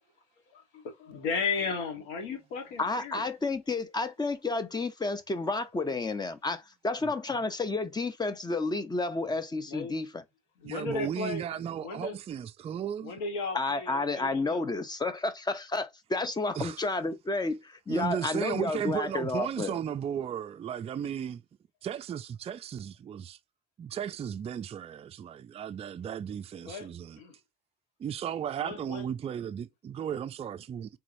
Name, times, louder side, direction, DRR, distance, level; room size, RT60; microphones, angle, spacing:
voice 1, 0.5-3.2 9.7-10.0 10.6-11.4 11.8-12.2 13.0-14.6 26.6-26.9 27.2-27.3 28.6-29.0, left 4 dB, 90° left, 1.3 m, -35 dB
voice 2, 2.8-10.2 13.5-19.7, left 3 dB, 20° left, 0.9 m, -31 dB
voice 3, 10.6-13.1 16.6-16.8 17.9-21.4 21.8-23.4 23.8-27.2 28.0-31.0, right 9 dB, 35° right, 0.4 m, -35 dB
3.8 x 2.9 x 2.6 m
supercardioid pair, 70°, 19 cm